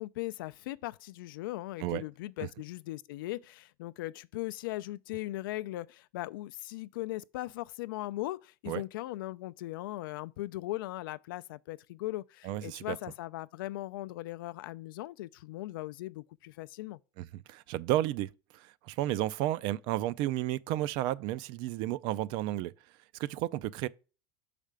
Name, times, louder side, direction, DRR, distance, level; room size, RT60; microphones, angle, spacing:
voice 1, 0.0-17.0, left 17 dB, 85° left, 0.4 m, -39 dB
voice 2, 12.4-13.0 17.2-22.7 23.2-23.9, right 14 dB, 45° right, 0.4 m, -32 dB
6.5 x 5.0 x 3.4 m
supercardioid pair, 155°, 11 cm